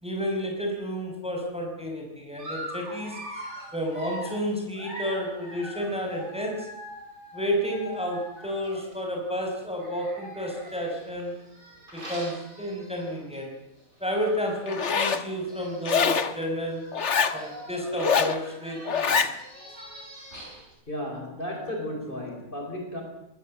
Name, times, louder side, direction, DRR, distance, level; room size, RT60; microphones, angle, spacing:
voice 1, 0.0-3.2 3.7-6.7 7.3-11.4 11.9-13.5 14.0-16.8 17.3-19.2, equal, 5° right, 1 dB, 5.6 m, -31 dB
Dog, 2.4-9.0 9.7-13.4 13.8-13.9 14.2-14.3 15.2-15.3 15.5-16.0 16.6-20.7, equal, 50° right, 7.4 m, -42 dB
Zipper (clothing), 14.7-15.2 15.8-16.3 16.9-17.4 17.9-18.4 18.9-19.3, left 6 dB, 55° left, 1.6 m, -24 dB
voice 2, 20.9-23.0, left 1 dB, 35° left, 2 dB, 5.5 m, -34 dB
24.5 x 20.0 x 7.7 m, 0.81 s
omnidirectional pair, 1.5 m